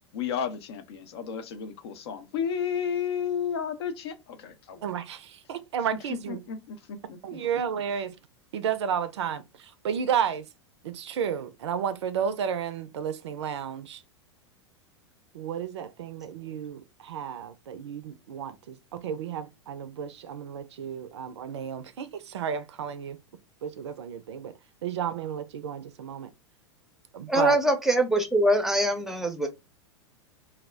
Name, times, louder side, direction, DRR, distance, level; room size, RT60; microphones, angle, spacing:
voice 1, 0.1-4.8 6.3-7.2, left 7 dB, 60° left, 0.5 m, -32 dB
voice 2, 4.8-6.4 7.2-8.1 8.5-10.5 10.8-14.0 15.3-23.2 23.6-26.3 27.1-27.6, right 8 dB, 70° right, 0.4 m, -32 dB
voice 3, 27.3-29.5, right 1 dB, ahead, 0.6 m, -23 dB
2.3 x 2.0 x 3.3 m
figure-of-eight pair, 95°, 15 cm